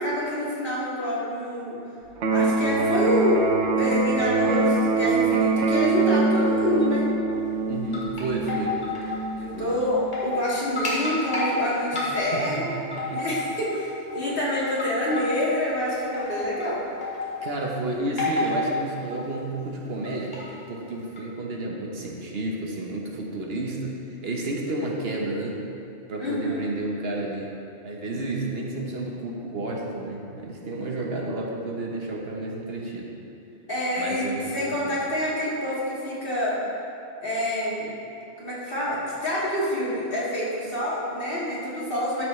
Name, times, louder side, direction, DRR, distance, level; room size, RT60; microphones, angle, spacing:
voice 1, 0.0-1.8 2.3-3.4 3.8-7.1 9.4-12.7 13.1-16.8 26.2-26.7 33.7-36.5 37.2-37.9 38.4-42.2, left 1 dB, 55° left, -7 dB, 2.1 m, -27 dB
Electric guitar, 2.2-10.2, right 3 dB, 85° right, 1.0 m, -24 dB
sound 1, 7.7-9.2 9.5-9.6 10.0-10.5 10.8-11.5 12.0-12.5 12.8-13.8 14.1-14.4 14.8-15.5 16.1-16.6 17.0-17.4 18.2-18.7 19.0-19.4 20.1-20.4 21.2-21.3, left 2 dB, 35° left, 1.9 m, -30 dB
voice 2, 7.7-8.7 9.5-9.7 11.9-12.6 12.9-13.2 17.4-20.4 20.7-23.9 24.2-25.6 26.1-27.5 27.8-33.1 34.0-34.6 34.8-35.0, right 2 dB, 65° right, -1 dB, 1.2 m, -31 dB
12.5 x 6.2 x 3.2 m, 2.7 s
omnidirectional pair, 1.1 m